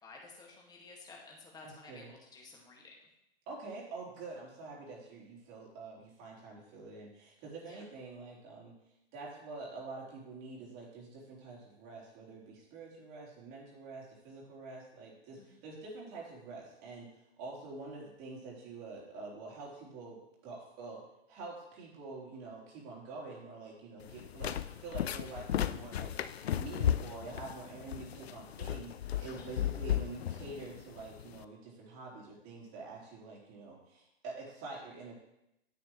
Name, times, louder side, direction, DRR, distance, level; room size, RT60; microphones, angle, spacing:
voice 1, 0.0-2.8 7.7-7.8 15.4-15.6 29.4-29.6, left 3 dB, 10° left, -1 dB, 1.9 m, -53 dB
voice 2, 1.6-2.1 3.5-8.7 9.1-17.1 17.4-20.2 20.4-21.0 21.3-35.2, right 3 dB, 40° right, -5 dB, 3.8 m, -46 dB
sound 1, 24.0-31.4, left 10 dB, 75° left, 0.5 m, -35 dB
9.4 x 8.5 x 3.1 m, 0.86 s
hypercardioid pair, 120°, 31 cm